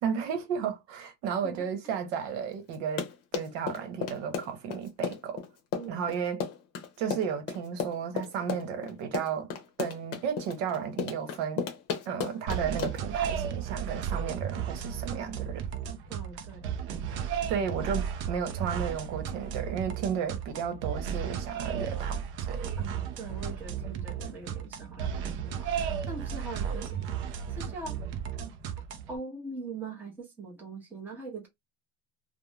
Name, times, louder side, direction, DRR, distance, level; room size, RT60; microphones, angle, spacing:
voice 1, 0.0-5.4 5.9-6.4 7.0-9.5 9.8-11.6 12.1-15.6 17.5-22.2 22.5-22.7, right 7 dB, 70° right, 1.0 m, -33 dB
voice 2, 1.4-2.0 5.7-6.1 16.1-16.8 21.6-21.8 22.8-27.1 27.5-28.0 29.1-31.5, right 3 dB, 5° right, 0.7 m, -42 dB
Run, 2.7-13.2, left 6 dB, 40° left, 0.7 m, -34 dB
sound 1, 12.5-29.2, right 8 dB, 35° right, 0.4 m, -34 dB
2.5 x 2.1 x 3.1 m
cardioid pair, 165°, 37 cm